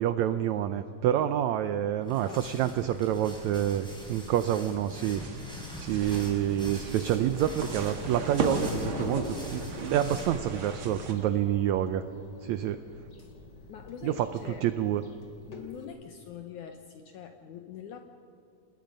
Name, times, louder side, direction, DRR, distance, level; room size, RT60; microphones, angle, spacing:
voice 1, 0.0-5.2 5.8-12.0 12.4-12.8 14.0-15.0, right 11 dB, 85° right, 11 dB, 1.6 m, -28 dB
sound 1, 2.0-10.5, right 1 dB, ahead, 3.8 m, -44 dB
voice 2, 2.1-2.7 13.2-13.3 13.7-14.6 15.5-18.0, left 9 dB, 70° left, 6 dB, 2.1 m, -44 dB
sound 2, 5.2-11.1, right 3 dB, 45° right, 2.2 m, -38 dB
Thunder, 5.9-15.8, left 1 dB, 35° left, 2.6 m, -42 dB
28.5 x 20.0 x 5.3 m, 2.7 s
omnidirectional pair, 4.0 m